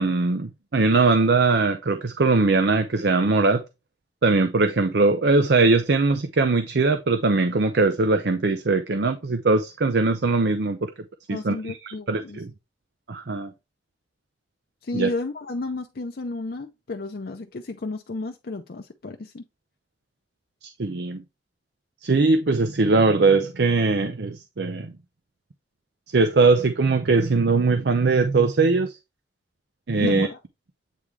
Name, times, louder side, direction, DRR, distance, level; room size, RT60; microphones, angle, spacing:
voice 1, 0.0-3.6 4.2-10.9 11.3-12.5 13.1-13.5 14.9-15.1 20.6-21.2 22.0-24.9 26.1-29.0 29.9-30.3, right 3 dB, 70° right, 0.6 m, -21 dB
voice 2, 11.3-12.4 14.8-19.4 30.0-30.4, left 2 dB, 60° left, 0.6 m, -32 dB
8.5 x 3.6 x 3.2 m
head